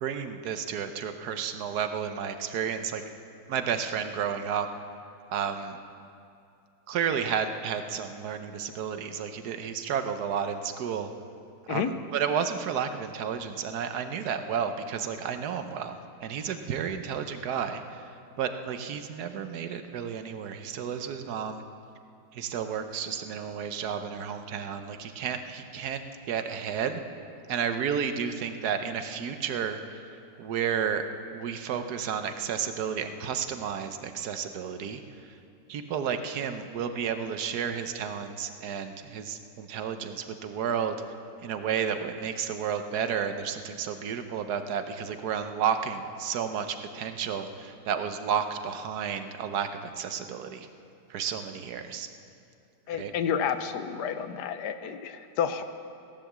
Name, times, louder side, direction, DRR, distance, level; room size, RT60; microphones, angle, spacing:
voice 1, 0.0-3.0 3.5-4.7 5.3-5.8 6.9-11.1 11.6-18.1 18.4-21.6 22.3-27.0 27.5-30.0 30.4-31.1 31.3-35.4 35.7-41.0 41.4-50.7 51.1-52.1 52.9-53.1, right 7 dB, 65° right, 8 dB, 1.3 m, -32 dB
voice 2, 52.9-55.6, left 8 dB, 70° left, 10 dB, 1.3 m, -30 dB
16.5 x 10.5 x 7.4 m, 2.5 s
omnidirectional pair, 1.9 m